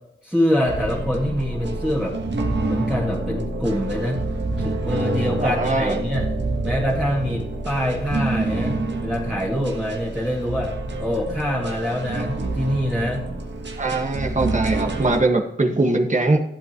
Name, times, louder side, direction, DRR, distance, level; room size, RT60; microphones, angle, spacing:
voice 1, 0.2-2.2 2.6-4.2 4.6-6.3 6.6-8.8 9.0-10.7 11.0-13.2, equal, 5° right, -5 dB, 2.2 m, -24 dB
sound 1, 0.7-15.2, right 2 dB, 90° right, 1.5 m, -27 dB
voice 2, 5.4-6.0 13.8-16.4, right 2 dB, 40° right, 2 dB, 1.7 m, -21 dB
14.5 x 8.3 x 3.1 m, 0.83 s
wide cardioid pair, 80°, 18 cm